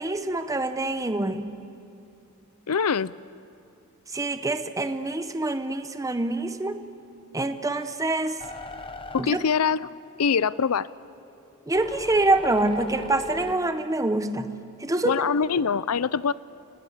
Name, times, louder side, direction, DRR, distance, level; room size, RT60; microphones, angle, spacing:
voice 1, 0.0-1.6 4.1-6.8 7.3-8.4 9.2-9.4 11.7-14.5 14.8-15.2, right 2 dB, 15° right, 9 dB, 0.9 m, -26 dB
voice 2, 2.7-3.1 9.1-9.9 10.2-10.9 15.0-16.3, left 6 dB, 85° left, 19 dB, 0.6 m, -23 dB
sound 1, 8.4-10.2 10.7-13.6, left 3 dB, 25° left, 1.1 m, -38 dB
29.5 x 18.5 x 8.1 m, 2.6 s
head